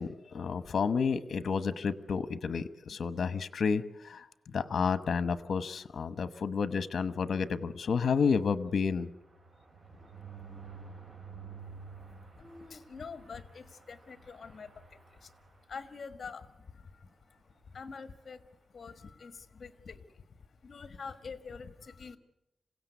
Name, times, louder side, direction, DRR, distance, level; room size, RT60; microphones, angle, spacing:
voice 1, 0.0-4.2 4.5-9.1, left 5 dB, 70° left, 13 dB, 1.0 m, -30 dB
sound 1, 7.7-16.1 16.6-16.7 17.0-17.1 17.4-17.6, right 5 dB, 45° right, 5.9 m, -51 dB
voice 2, 12.4-15.3 15.7-18.4 18.7-20.4 20.6-22.2, left 5 dB, 50° left, 10 dB, 1.6 m, -46 dB
27.0 x 17.0 x 8.2 m, 0.87 s
wide cardioid pair, 155°, 0 cm